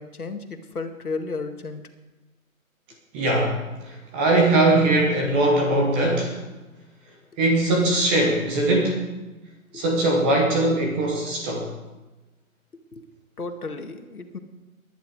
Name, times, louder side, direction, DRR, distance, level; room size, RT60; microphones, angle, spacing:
voice 1, 0.0-1.8 9.7-9.9 12.9-13.0 13.4-14.4, left 3 dB, 85° left, 6 dB, 2.1 m, -33 dB
voice 2, 3.1-3.6 4.1-6.4 7.4-9.0 9.7-11.7, right 2 dB, 10° right, 1 dB, 0.7 m, -20 dB
20.0 x 10.5 x 4.8 m, 1.1 s
hypercardioid pair, 155°, 43 cm